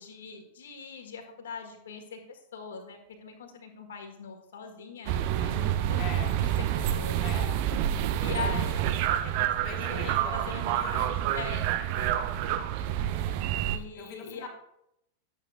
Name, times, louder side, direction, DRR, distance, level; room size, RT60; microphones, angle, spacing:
voice 1, 0.0-6.1 6.4-7.4 8.2-9.5 9.9-12.3 13.5-14.5, left 5 dB, 65° left, 4 dB, 1.7 m, -42 dB
sound 1, 5.1-13.8, right 11 dB, 45° right, 0.6 m, -28 dB
voice 2, 6.0-6.4 7.2-7.7 8.3-8.8 9.6-11.1 13.3-13.5 13.9-14.5, left 6 dB, 40° left, 2 dB, 1.4 m, -43 dB
11.5 x 8.3 x 2.5 m, 0.81 s
figure-of-eight pair, 90°, 0 cm